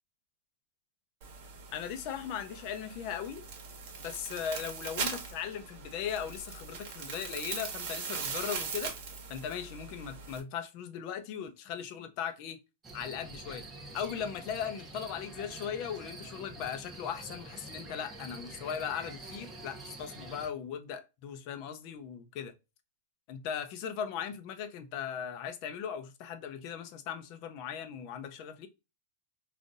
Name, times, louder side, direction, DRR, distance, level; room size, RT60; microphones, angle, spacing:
sound 1, 1.2-10.4, right 5 dB, 55° right, 1.2 m, -40 dB
voice 1, 1.7-3.4 4.0-8.9 9.3-12.6 12.9-13.6 13.9-22.5 23.3-28.7, left 8 dB, 45° left, 0.6 m, -38 dB
sound 2, 12.8-20.5, right 2 dB, 15° right, 0.8 m, -46 dB
3.8 x 2.5 x 2.4 m
supercardioid pair, 140°, 0 cm